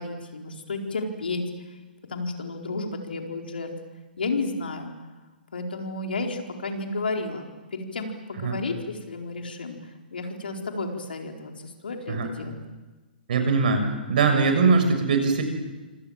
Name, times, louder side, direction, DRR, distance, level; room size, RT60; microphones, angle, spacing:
voice 1, 0.0-1.4 2.1-3.7 4.2-4.9 5.5-12.6, left 3 dB, 70° left, 3 dB, 4.4 m, -32 dB
voice 2, 13.3-15.4, right 4 dB, 55° right, 6 dB, 6.5 m, -21 dB
26.5 x 26.5 x 7.5 m, 1.2 s
figure-of-eight pair, 120°, 5 cm